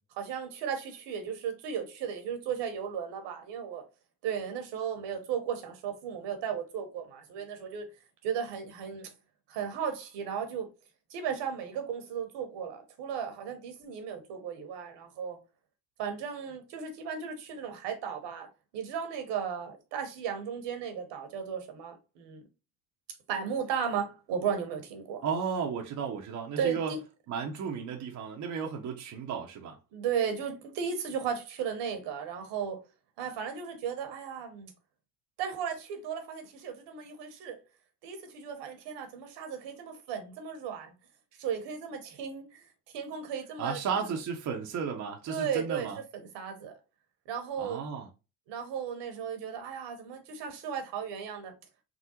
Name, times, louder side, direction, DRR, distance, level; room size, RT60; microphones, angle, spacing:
voice 1, 0.1-3.8 4.2-7.9 8.2-9.1 9.5-10.7 11.1-15.4 16.0-18.5 18.7-22.4 23.3-25.2 26.6-27.0 29.9-32.8 33.2-34.7 35.4-37.6 38.0-40.9 41.4-42.6 42.9-43.8 45.3-46.7 47.3-47.8 48.5-51.5, right 7 dB, 65° right, 1.1 m, -35 dB
voice 2, 25.2-26.9 27.3-29.8 43.6-46.0 47.6-48.1, right 6 dB, 40° right, 0.7 m, -34 dB
3.6 x 2.0 x 2.8 m
hypercardioid pair, 70°, 45 cm